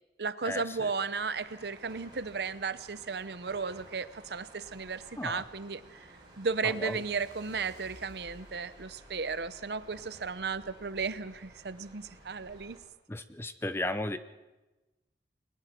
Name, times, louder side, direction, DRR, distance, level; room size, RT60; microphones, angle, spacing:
voice 1, 0.2-6.1 6.4-12.8, right 5 dB, 65° right, 14 dB, 0.7 m, -35 dB
sound 1, 0.7-12.8, right 1 dB, 25° right, 5.9 m, -54 dB
voice 2, 13.1-14.2, left 1 dB, 15° left, 11 dB, 0.7 m, -34 dB
29.5 x 21.0 x 4.5 m, 1.1 s
head